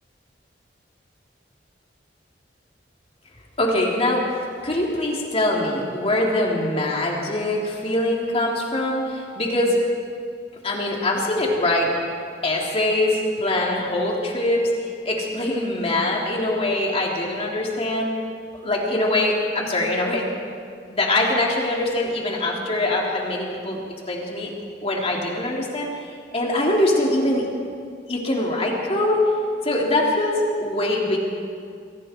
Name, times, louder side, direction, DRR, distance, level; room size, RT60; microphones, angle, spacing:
voice 1, 3.6-4.2 4.6-9.8 10.6-11.9 12.4-18.1 18.6-20.3 20.9-23.8 24.1-24.5 24.8-25.9 26.3-27.5 28.1-29.2 29.6-31.2, left 1 dB, 35° left, -2 dB, 3.2 m, -23 dB
29.0 x 23.5 x 4.5 m, 2.3 s
head